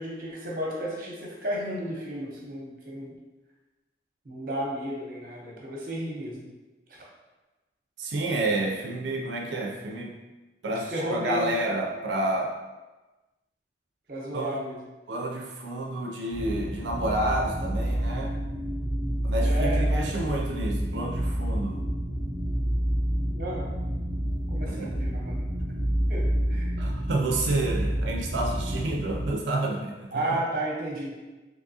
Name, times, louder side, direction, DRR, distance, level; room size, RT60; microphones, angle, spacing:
voice 1, 0.0-3.1 4.2-6.5 6.9-7.0 10.9-11.6 14.1-14.8 19.4-19.9 23.3-23.7 24.5-25.3 26.1-26.8 30.1-31.1, right 1 dB, 50° right, -3 dB, 0.8 m, -33 dB
voice 2, 8.0-10.2 10.6-12.6 14.3-14.6 15.1-18.3 19.2-21.8 24.7-25.0 26.8-30.4, right 2 dB, 85° right, 0 dB, 0.4 m, -29 dB
sound 1, 16.3-29.3, equal, 25° right, 0.5 m, -28 dB
3.4 x 2.9 x 2.7 m, 1.1 s
head